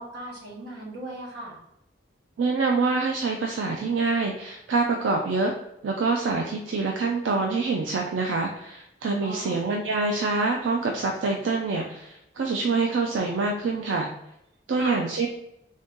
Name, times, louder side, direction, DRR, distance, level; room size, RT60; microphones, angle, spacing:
voice 1, 0.0-1.6 9.2-9.6 14.8-15.0, right 1 dB, 65° right, -3 dB, 1.3 m, -37 dB
voice 2, 2.4-5.5 5.8-14.1 14.7-15.3, right 3 dB, 85° right, 1 dB, 0.4 m, -26 dB
3.6 x 2.7 x 3.5 m, 0.83 s
head